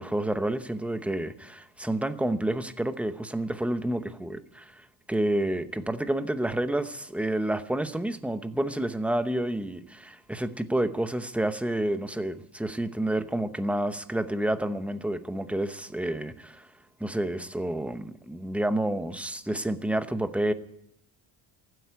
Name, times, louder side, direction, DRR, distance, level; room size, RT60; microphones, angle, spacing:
voice 1, 0.0-16.7 17.0-20.5, right 1 dB, 5° right, 0.8 m, -29 dB
14.5 x 8.1 x 9.5 m
cardioid pair, 105°, 48 cm